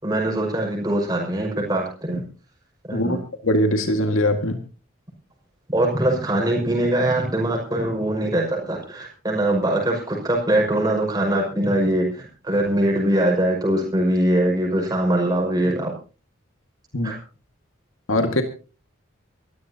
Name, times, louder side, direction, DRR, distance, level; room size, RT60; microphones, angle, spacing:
voice 1, 0.0-2.2 2.9-3.2 5.7-15.9 17.0-17.2, right 1 dB, 20° right, -1 dB, 5.8 m, -22 dB
voice 2, 2.9-4.6 16.9-17.1 18.1-18.4, left 1 dB, 80° left, 6 dB, 1.9 m, -21 dB
24.5 x 14.0 x 2.9 m, 0.34 s
head